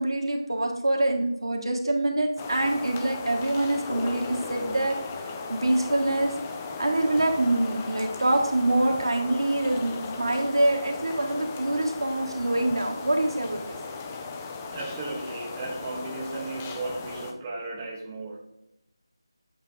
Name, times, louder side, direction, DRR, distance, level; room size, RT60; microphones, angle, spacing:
voice 1, 0.0-4.9 5.5-6.3 6.8-13.8, right 1 dB, 75° right, 1 dB, 1.5 m, -25 dB
sound 1, 2.4-17.3, left 4 dB, 15° left, 0.5 m, -37 dB
voice 2, 14.7-18.4, right 2 dB, 15° right, -3 dB, 0.8 m, -35 dB
8.2 x 3.7 x 3.5 m, 0.86 s
figure-of-eight pair, 165°, 3 cm